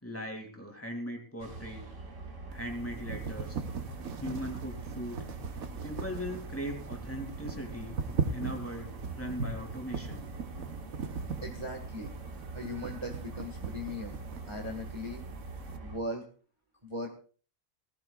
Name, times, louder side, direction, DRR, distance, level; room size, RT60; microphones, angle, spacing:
voice 1, 0.0-1.9 2.5-3.6 4.2-5.2 5.8-8.0 8.3-10.2, equal, 10° left, 2 dB, 2.6 m, -39 dB
sound 1, 1.4-16.0, right 3 dB, 60° right, 2.2 m, -44 dB
sound 2, 2.5-15.8, right 5 dB, 75° right, 1.5 m, -39 dB
voice 2, 11.4-12.1 12.5-14.2 14.5-15.2 15.8-16.3 16.8-17.1, left 1 dB, 20° right, 2 dB, 1.6 m, -38 dB
19.0 x 15.0 x 2.4 m, 0.38 s
omnidirectional pair, 1.5 m